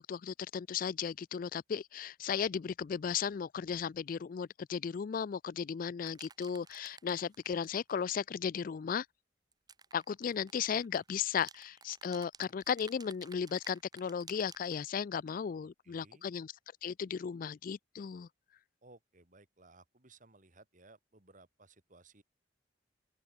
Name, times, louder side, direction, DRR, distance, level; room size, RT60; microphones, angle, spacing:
voice 1, 0.0-9.1 9.9-16.5 16.8-18.3, left 7 dB, 45° left, 0.3 m, -35 dB
sound 1, 6.1-8.1 9.5-14.8, right 5 dB, 20° right, 3.3 m, -55 dB
voice 2, 15.8-16.2 18.8-22.2, right 3 dB, 45° right, 3.1 m, -60 dB
head